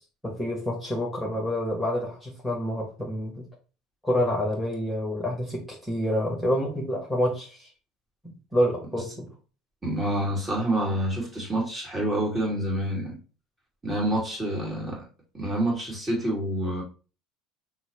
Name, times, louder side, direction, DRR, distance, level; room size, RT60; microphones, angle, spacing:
voice 1, 0.2-3.5 4.0-7.7 8.2-9.3, equal, ahead, -3 dB, 1.4 m, -28 dB
voice 2, 9.8-13.2 13.8-15.0 15.3-16.8, right 1 dB, 20° right, -2 dB, 2.1 m, -27 dB
6.0 x 2.2 x 2.9 m, 0.35 s
figure-of-eight pair, 65°, 0 cm